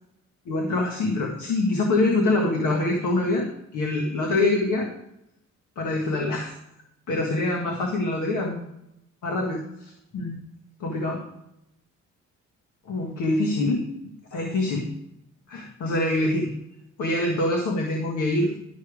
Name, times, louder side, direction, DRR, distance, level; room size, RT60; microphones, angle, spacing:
voice 1, 0.5-3.4 3.7-4.9 5.8-6.5 7.1-8.6 9.2-10.4 10.8-11.2 12.9-13.9 14.3-14.9 15.5-16.5 17.0-18.5, left 2 dB, 75° left, 1 dB, 1.7 m, -25 dB
12.0 x 6.5 x 5.0 m, 0.83 s
cardioid pair, 90°, 30 cm